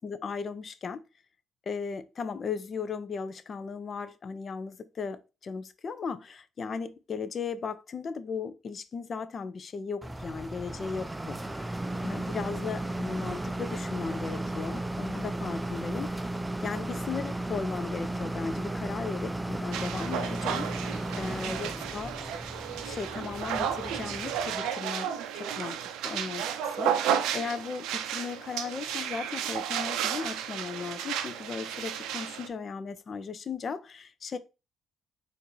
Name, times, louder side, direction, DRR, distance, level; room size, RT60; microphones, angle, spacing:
voice 1, 0.0-1.0 1.7-16.1 16.6-22.2 22.8-34.4, left 5 dB, 50° left, 0.4 m, -37 dB
sound 1, 10.0-24.7, right 1 dB, 15° right, 0.4 m, -35 dB
sound 2, 19.7-32.5, right 9 dB, 75° right, 0.4 m, -33 dB
4.2 x 2.5 x 3.2 m
hypercardioid pair, 55°, 0 cm